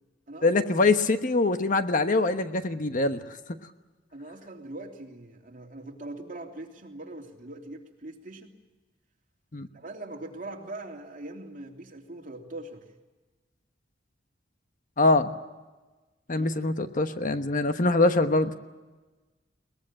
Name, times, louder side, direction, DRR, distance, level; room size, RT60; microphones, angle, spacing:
voice 1, 0.4-3.2 9.5-9.7 15.0-15.3 16.3-18.5, left 2 dB, 45° left, 9 dB, 1.2 m, -23 dB
voice 2, 4.1-8.5 9.7-12.9 16.3-16.5, right 2 dB, 45° right, 1 dB, 3.2 m, -41 dB
22.0 x 20.5 x 8.9 m, 1.2 s
head